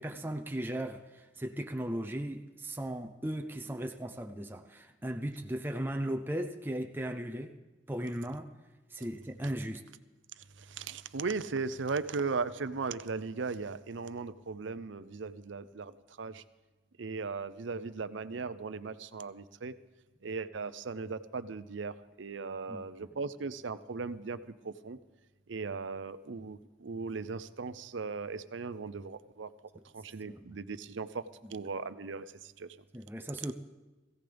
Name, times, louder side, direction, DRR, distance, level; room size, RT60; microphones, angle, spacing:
voice 1, 0.0-7.5 7.9-8.5 8.9-9.8 22.7-23.1 30.3-30.6 32.9-33.5, right 1 dB, 10° right, 5 dB, 0.6 m, -37 dB
voice 2, 10.6-16.4 17.0-19.7 20.2-24.4 24.6-25.0 25.5-29.5 29.9-32.8, right 4 dB, 75° right, 14 dB, 0.6 m, -37 dB
21.0 x 16.0 x 3.5 m, 1.2 s
head